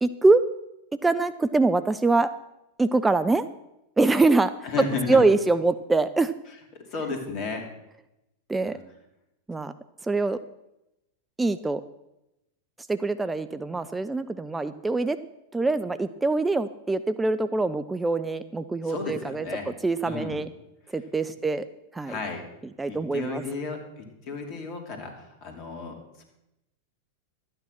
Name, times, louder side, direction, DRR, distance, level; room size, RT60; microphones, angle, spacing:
voice 1, 0.0-0.4 1.0-2.3 2.8-3.4 4.0-4.5 4.8-6.3 8.5-8.8 9.5-9.7 10.0-10.4 11.4-11.8 12.9-15.2 15.5-19.5 19.8-20.5 20.9-21.7 21.9-22.2 22.8-23.4, right 3 dB, 10° right, 11 dB, 0.4 m, -24 dB
voice 2, 4.6-5.2 6.7-7.6 8.6-8.8 18.8-19.7 20.0-20.4 22.0-22.4 22.9-26.2, left 4 dB, 40° left, 3 dB, 2.8 m, -33 dB
12.5 x 9.3 x 6.0 m, 0.90 s
figure-of-eight pair, 90°, 0 cm